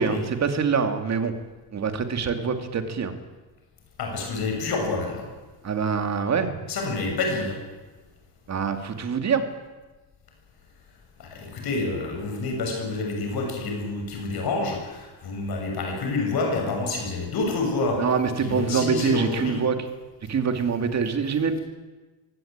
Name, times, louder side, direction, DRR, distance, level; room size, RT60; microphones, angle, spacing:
voice 1, 0.0-1.3 1.7-3.1 5.6-6.6 8.5-9.4 18.0-19.8 20.3-21.6, right 6 dB, 40° right, 7 dB, 2.7 m, -25 dB
voice 2, 4.0-5.3 6.7-7.6 11.2-18.0 18.4-19.6, left 3 dB, 60° left, 2 dB, 7.0 m, -28 dB
24.0 x 17.5 x 9.0 m, 1.2 s
cardioid pair, 140°, 42 cm